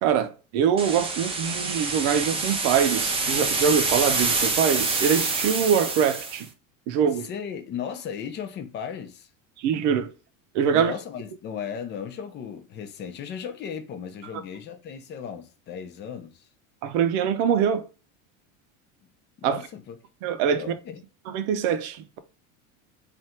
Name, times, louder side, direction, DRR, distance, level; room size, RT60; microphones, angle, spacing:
voice 1, 0.0-6.5 6.9-7.3 9.6-10.1 10.5-10.9 16.8-17.9 19.4-19.6 20.2-20.6 21.3-22.2, right 7 dB, 60° right, 0.7 m, -23 dB
sound 1, 0.8-6.4, right 3 dB, 15° right, 0.6 m, -26 dB
voice 2, 7.2-9.3 10.7-16.4 19.4-20.0 20.5-21.0, left 7 dB, 25° left, 0.6 m, -36 dB
3.4 x 2.6 x 4.3 m
cardioid pair, 160°, 40 cm